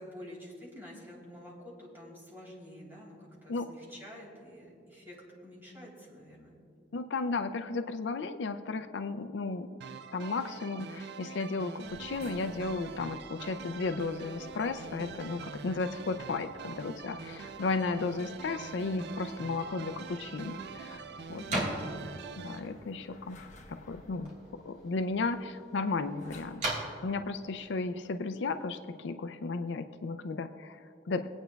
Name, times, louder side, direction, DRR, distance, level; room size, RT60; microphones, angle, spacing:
voice 1, 0.0-5.1 5.4-6.6 21.3-21.7, left 1 dB, 10° right, -6 dB, 3.1 m, -48 dB
voice 2, 6.9-9.7 10.1-21.0 21.3-21.4 22.0-22.1 22.4-26.6 27.0-31.3, left 3 dB, 70° left, 9 dB, 0.4 m, -34 dB
sound 1, 9.8-22.6, right 6 dB, 60° right, 0.4 m, -45 dB
sound 2, 11.8-27.0, left 1 dB, 40° left, 1.0 m, -55 dB
sound 3, 19.8-29.0, right 1 dB, 45° right, 3.2 m, -41 dB
23.5 x 9.0 x 2.3 m, 2.4 s
head